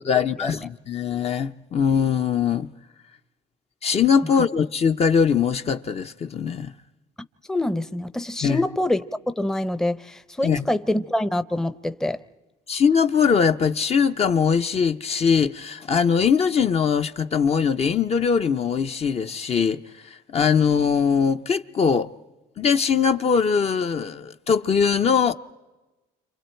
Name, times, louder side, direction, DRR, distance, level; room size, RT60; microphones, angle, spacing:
voice 1, 0.0-2.7 3.8-6.7 8.4-8.7 10.4-10.7 12.7-19.8 20.3-22.1 22.6-25.3, left 6 dB, 35° left, 0.7 m, -21 dB
voice 2, 7.5-9.0 9.3-12.2, left 1 dB, 5° left, 0.7 m, -25 dB
30.0 x 27.0 x 4.5 m
cardioid pair, 110°, 17 cm